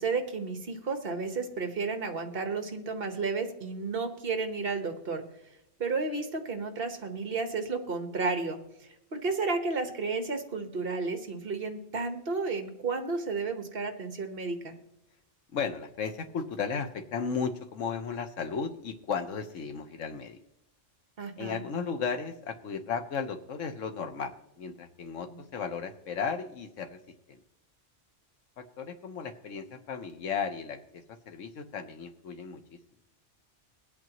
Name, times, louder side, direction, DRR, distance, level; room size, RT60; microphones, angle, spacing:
voice 1, 0.0-5.2 5.8-8.6 9.1-14.7 21.2-21.6, right 4 dB, 50° right, 7 dB, 1.5 m, -32 dB
voice 2, 15.5-20.4 21.4-27.0 27.3-27.4 28.6-32.8, left 6 dB, 90° left, 7 dB, 1.3 m, -35 dB
22.0 x 8.4 x 3.0 m, 0.85 s
omnidirectional pair, 1.3 m